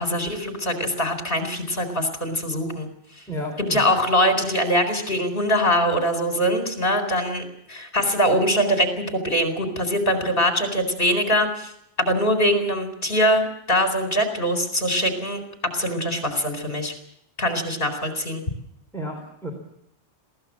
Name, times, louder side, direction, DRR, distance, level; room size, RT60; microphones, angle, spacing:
voice 1, 0.0-2.9 3.7-7.4 7.7-11.7 12.0-15.4 15.7-16.9 17.4-18.4, equal, 50° left, 5 dB, 4.4 m, -23 dB
voice 2, 3.3-3.8 18.9-19.5, equal, ahead, 0 dB, 3.6 m, -32 dB
22.0 x 16.5 x 7.4 m, 0.73 s
omnidirectional pair, 1.2 m